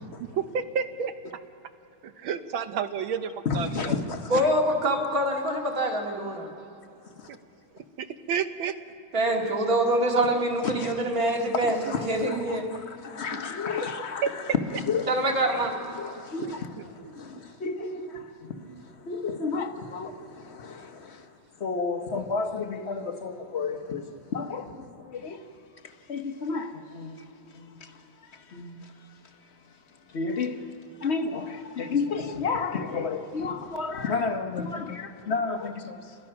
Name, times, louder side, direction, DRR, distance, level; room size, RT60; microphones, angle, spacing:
voice 1, 0.2-1.1 2.0-4.0 7.3-7.4 8.0-8.7 9.4-9.5 10.3-10.4 13.8-14.0 14.2-14.3 14.7-14.8 15.2-15.3 16.4-16.8 17.3-17.4 18.5-18.8, right 7 dB, 70° right, 9 dB, 1.6 m, -31 dB
voice 2, 3.5-4.4 10.6-11.0 11.6-14.2 14.7-15.1 15.9-18.5 19.0-21.2 21.6-24.0 24.3-25.4 26.1-27.2 27.5-27.9 28.5-28.9 30.1-30.6 31.0-36.0, left 4 dB, 45° left, 7 dB, 0.9 m, -32 dB
voice 3, 4.3-6.5 9.1-12.6 15.1-15.7, right 1 dB, 40° right, 0 dB, 2.8 m, -25 dB
29.0 x 21.5 x 5.9 m, 2.8 s
omnidirectional pair, 2.3 m